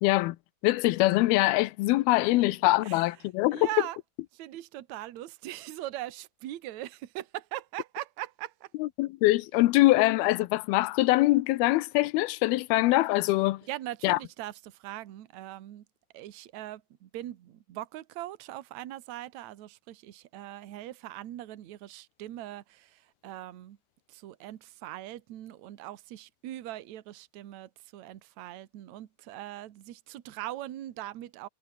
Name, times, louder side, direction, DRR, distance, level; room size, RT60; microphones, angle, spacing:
voice 1, 0.0-0.4 0.6-3.7 8.8-13.6 14.0-14.2, left 19 dB, 90° left, 2.7 m, -23 dB
voice 2, 3.5-4.0 4.3-8.7 13.7-15.8 16.1-23.8 24.1-31.5, right 14 dB, 60° right, 2.3 m, -41 dB
omnidirectional pair, 4.3 m